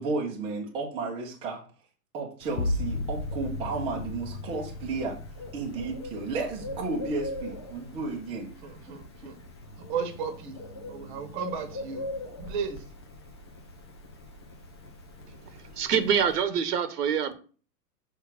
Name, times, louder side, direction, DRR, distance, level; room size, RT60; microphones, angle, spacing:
voice 1, 0.0-1.6 2.1-5.2 5.5-8.5, right 3 dB, 10° right, 0.8 m, -33 dB
Bird, 2.4-16.4, left 1 dB, 20° left, 0.4 m, -43 dB
sound 1, 2.5-8.0 8.5-9.1, left 2 dB, 70° left, 0.9 m, -36 dB
voice 2, 8.6-9.4 9.8-10.6 10.9-12.1 12.4-12.9, right 6 dB, 30° right, 1.2 m, -35 dB
voice 3, 15.7-17.3, right 7 dB, 70° right, 1.2 m, -25 dB
6.4 x 3.5 x 6.0 m
hypercardioid pair, 160°, 49 cm